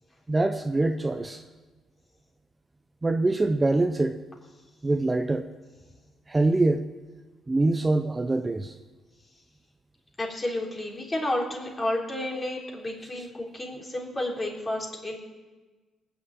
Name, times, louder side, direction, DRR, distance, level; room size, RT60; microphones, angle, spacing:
voice 1, 0.3-1.4 3.0-4.2 4.8-5.5 6.3-6.9 7.5-8.7, right 2 dB, 20° right, 8 dB, 0.7 m, -24 dB
voice 2, 10.2-15.2, left 1 dB, 25° left, -1 dB, 3.6 m, -31 dB
18.5 x 7.1 x 8.9 m, 1.3 s
cardioid pair, 90°, 0 cm